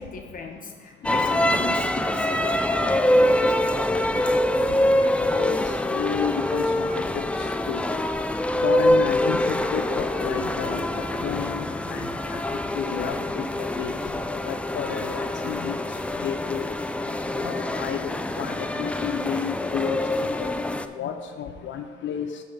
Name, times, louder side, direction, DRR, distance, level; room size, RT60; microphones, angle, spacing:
voice 1, 0.0-3.8 4.5-4.6, left 4 dB, 45° left, 2 dB, 1.0 m, -38 dB
sound 1, 1.0-20.9, left 1 dB, 5° left, 0.3 m, -25 dB
voice 2, 5.2-5.6 5.9-7.8 8.6-10.8 11.2-12.4 12.7-13.9 14.4-15.8 16.2-16.6 17.4-20.5 21.0-22.3, left 8 dB, 70° left, 5 dB, 0.5 m, -31 dB
7.7 x 3.6 x 6.5 m, 1.5 s
cardioid pair, 90°, 20 cm